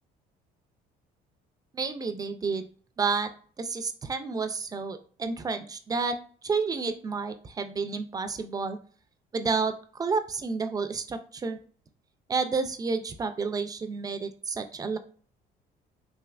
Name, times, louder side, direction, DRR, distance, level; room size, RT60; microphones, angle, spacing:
voice 1, 1.7-2.7 3.0-3.3 3.6-6.2 6.4-8.8 9.3-9.7 10.0-11.6 12.3-15.0, right 4 dB, 20° right, 9 dB, 0.3 m, -30 dB
3.3 x 2.7 x 2.4 m, 0.43 s
cardioid pair, 110°, 17 cm